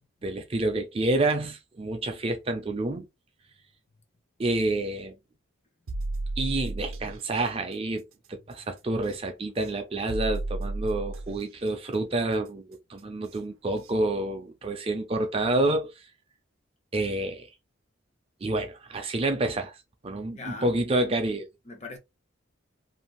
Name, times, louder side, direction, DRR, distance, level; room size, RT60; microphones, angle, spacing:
voice 1, 0.2-3.0 4.4-5.1 6.4-15.9 16.9-17.5 18.4-19.8 20.0-21.5, right 2 dB, 30° right, 0.4 m, -28 dB
sound 1, 5.9-7.2 9.0-9.1 10.1-11.4 13.2-13.3 13.8-13.9, right 2 dB, 85° right, 0.5 m, -32 dB
voice 2, 20.3-20.8 21.7-22.0, left 3 dB, 35° left, 0.7 m, -40 dB
3.2 x 2.6 x 2.3 m
head